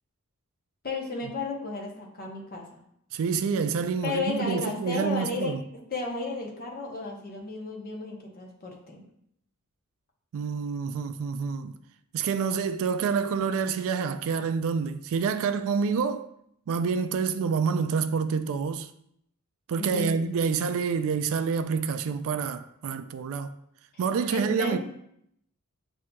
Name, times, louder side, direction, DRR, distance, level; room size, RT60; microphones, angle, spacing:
voice 1, 0.8-2.8 4.0-5.6 5.9-9.0 19.8-20.1 24.3-24.8, left 3 dB, 40° left, 0.8 m, -33 dB
voice 2, 3.1-5.6 10.3-11.7 12.1-16.3 16.7-18.9 19.7-23.5 24.0-24.8, right 5 dB, 65° right, 0.3 m, -27 dB
7.3 x 2.7 x 2.2 m
head